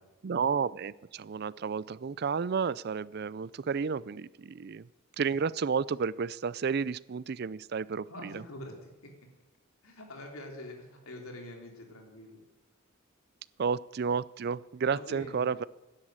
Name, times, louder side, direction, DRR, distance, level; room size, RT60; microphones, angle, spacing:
voice 1, 0.2-4.9 5.2-8.4 13.6-15.6, right 6 dB, 50° right, 20 dB, 0.4 m, -31 dB
voice 2, 8.0-8.9 9.8-12.4 14.9-15.5, left 1 dB, 85° left, 2 dB, 3.4 m, -45 dB
12.5 x 10.5 x 8.9 m, 1.1 s
head